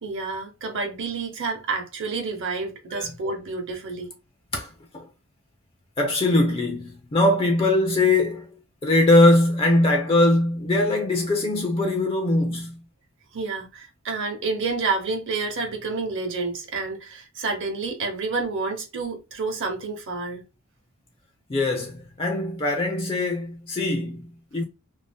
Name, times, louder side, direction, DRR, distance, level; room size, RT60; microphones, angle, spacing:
voice 1, 0.0-4.1 13.3-20.4, right 4 dB, 60° right, 0.9 m, -29 dB
voice 2, 6.0-8.5 8.8-12.8 21.5-24.6, left 2 dB, 25° left, 0.4 m, -21 dB
2.6 x 2.0 x 3.5 m
head